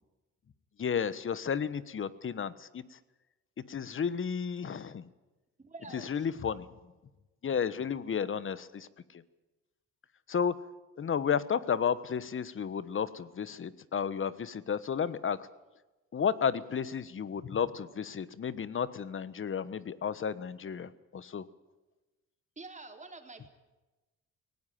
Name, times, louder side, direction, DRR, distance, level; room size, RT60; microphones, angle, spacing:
voice 1, 0.8-3.0 3.7-5.1 5.9-6.7 7.4-8.9 9.1-9.2 10.3-10.5 11.0-15.4 16.1-21.4, left 7 dB, 40° left, 16 dB, 1.2 m, -32 dB
voice 2, 5.6-6.3 22.6-23.5, right 3 dB, 25° right, 4 dB, 3.9 m, -47 dB
19.0 x 18.0 x 9.3 m, 1.1 s
cardioid pair, 90°, 30 cm